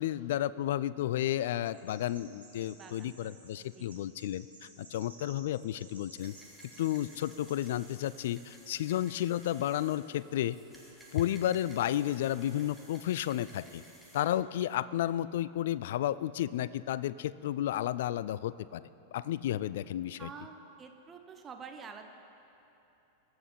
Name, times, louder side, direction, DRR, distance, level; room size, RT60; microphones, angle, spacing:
voice 1, 0.0-6.3 6.8-10.6 11.1-13.8 14.1-18.8 19.1-20.3, left 12 dB, 55° left, 18 dB, 0.3 m, -32 dB
Chirp tweet, 1.6-8.1, right 3 dB, 80° right, 2.3 m, -56 dB
voice 2, 2.7-3.9 8.8-8.9 20.2-22.0, right 6 dB, 25° right, 5 dB, 0.9 m, -49 dB
sound 1, 6.2-14.2, equal, 5° left, 2.1 m, -56 dB
22.0 x 7.7 x 4.3 m, 3.0 s
figure-of-eight pair, 90°, 0 cm